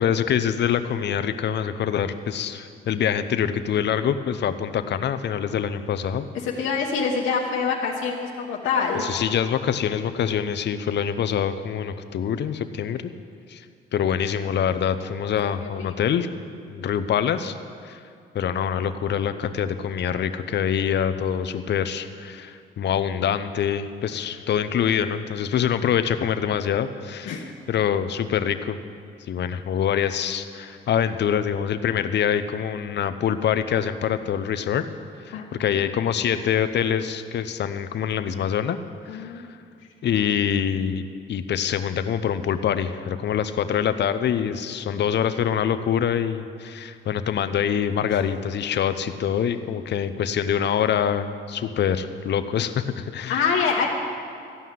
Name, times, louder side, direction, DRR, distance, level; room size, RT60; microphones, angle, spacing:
voice 1, 0.0-6.3 9.0-13.1 13.5-13.7 13.9-16.3 16.7-17.6 17.8-18.0 18.3-28.8 29.3-34.8 35.2-38.8 39.1-39.4 40.0-41.0 41.3-53.6, left 8 dB, 60° left, 10 dB, 0.7 m, -25 dB
voice 2, 6.4-9.0 15.6-15.9 27.3-27.4 35.3-35.4 39.1-39.5 53.3-53.9, left 5 dB, 85° left, -1 dB, 1.1 m, -25 dB
14.5 x 5.6 x 9.4 m, 2.4 s
cardioid pair, 90°, 20 cm